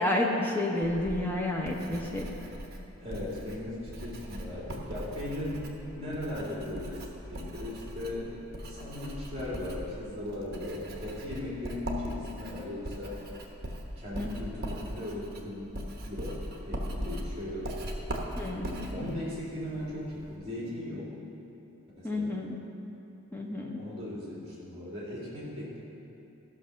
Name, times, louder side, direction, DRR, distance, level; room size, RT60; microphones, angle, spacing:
voice 1, 0.0-2.3 14.2-14.3 18.4-19.1 22.0-22.6 23.3-23.8, left 1 dB, 10° left, -2 dB, 1.0 m, -30 dB
Writing, 0.8-20.4, right 1 dB, 45° right, 1.1 m, -40 dB
voice 2, 3.0-5.7 5.9-13.2 14.0-15.7 16.0-17.7 18.9-21.1 22.0-22.4 23.7-25.8, left 1 dB, 30° right, -6 dB, 3.0 m, -38 dB
14.0 x 5.7 x 6.4 m, 2.8 s
head